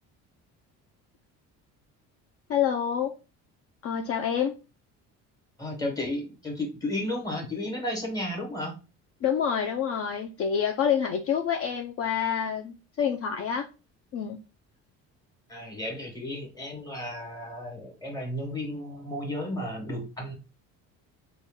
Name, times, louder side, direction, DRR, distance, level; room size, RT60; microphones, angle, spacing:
voice 1, 2.5-3.1 3.8-4.5 9.2-13.7 14.1-14.4, left 8 dB, 50° left, 0.4 m, -27 dB
voice 2, 5.6-8.7 15.5-20.3, left 1 dB, 10° left, 1.3 m, -33 dB
4.1 x 2.4 x 3.5 m
cardioid pair, 130°, 31 cm